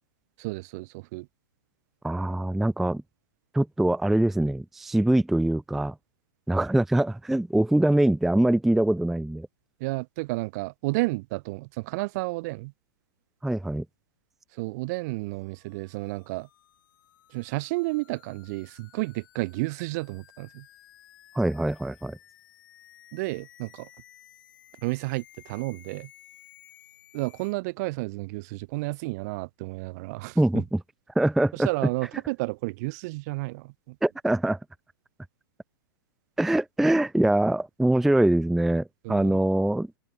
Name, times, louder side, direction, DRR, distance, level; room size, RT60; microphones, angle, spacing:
voice 1, 0.4-1.3 9.8-12.7 14.5-16.5 17.3-20.7 23.1-23.9 24.8-26.1 27.1-30.6 31.5-34.0 39.0-39.4, right 24 dB, 50° right, 0.9 m, -31 dB
voice 2, 2.0-3.0 3.5-6.0 6.5-9.5 13.4-13.9 21.3-22.2 30.4-30.8 31.2-31.7 34.0-34.6 36.4-39.9, right 1 dB, ahead, 0.3 m, -23 dB
sound 1, 15.3-27.5, left 13 dB, 65° left, 7.4 m, -56 dB
open air
hypercardioid pair, 125°, 12 cm